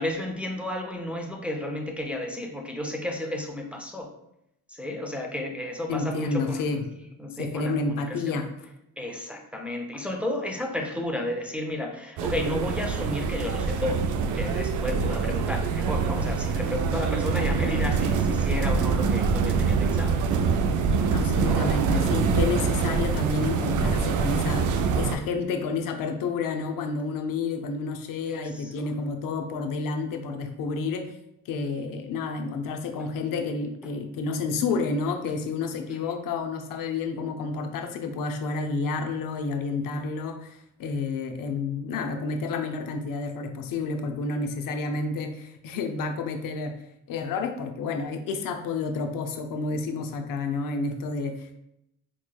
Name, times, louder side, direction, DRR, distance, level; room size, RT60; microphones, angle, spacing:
voice 1, 0.0-4.1 4.7-6.9 7.2-8.4 9.0-14.0 14.3-20.2 21.3-21.6 22.9-23.2 28.3-28.7 36.0-36.1 48.8-48.9, left 1 dB, 5° right, 2 dB, 0.4 m, -32 dB
voice 2, 5.9-6.8 7.4-8.5 21.1-31.1 31.5-46.7 47.1-51.5, left 4 dB, 70° left, 6 dB, 0.6 m, -30 dB
sound 1, 12.2-25.2, right 5 dB, 60° right, 0.4 m, -25 dB
4.4 x 3.1 x 2.2 m, 0.80 s
cardioid pair, 100°, 35 cm